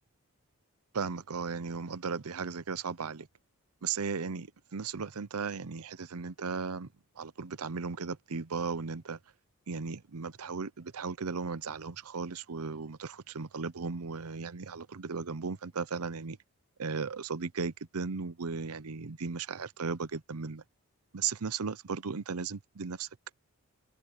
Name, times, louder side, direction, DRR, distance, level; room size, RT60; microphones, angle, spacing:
voice 1, 0.9-3.3 3.8-6.9 7.2-9.2 9.7-16.4 16.8-20.6 21.1-23.1, right 5 dB, 80° right, 0.8 m, -36 dB
head